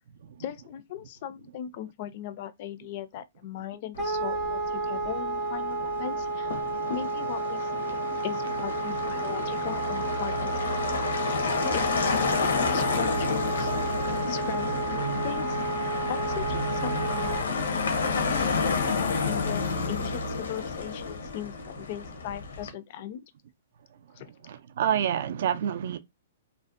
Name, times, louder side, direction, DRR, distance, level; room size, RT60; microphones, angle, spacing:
voice 1, 0.4-6.5 6.9-8.0 8.2-10.6 10.9-11.4 11.7-11.9 12.1-13.7 14.3-15.6 16.1-17.4 18.1-23.3 24.1-24.3, left 11 dB, 45° left, 0.3 m, -38 dB
Motor vehicle (road), 3.9-22.7, left 5 dB, 85° left, 0.6 m, -31 dB
Wind instrument woodwind instrument, 4.0-17.5, right 3 dB, 20° right, 0.7 m, -31 dB
sound 1, 8.5-20.4, right 4 dB, 90° right, 0.7 m, -38 dB
voice 2, 24.4-26.0, right 9 dB, 65° right, 0.3 m, -27 dB
2.5 x 2.0 x 2.4 m
hypercardioid pair, 145°, 0 cm